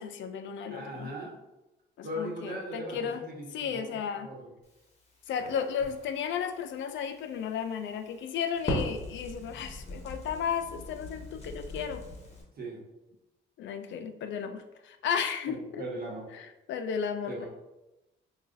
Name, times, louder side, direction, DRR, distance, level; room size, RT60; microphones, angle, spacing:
voice 1, 0.0-1.1 2.0-3.2 3.5-4.3 5.3-12.0 13.6-15.8 16.3-17.5, left 7 dB, 70° left, 8 dB, 0.4 m, -34 dB
voice 2, 0.7-1.3 2.0-4.5 12.6-12.8 15.5-16.3 17.3-17.5, right 1 dB, 50° right, -3 dB, 1.1 m, -39 dB
Crackle, 4.6-12.4, left 1 dB, 35° left, 1.0 m, -40 dB
4.8 x 2.4 x 2.6 m, 0.97 s
cardioid pair, 90°, 20 cm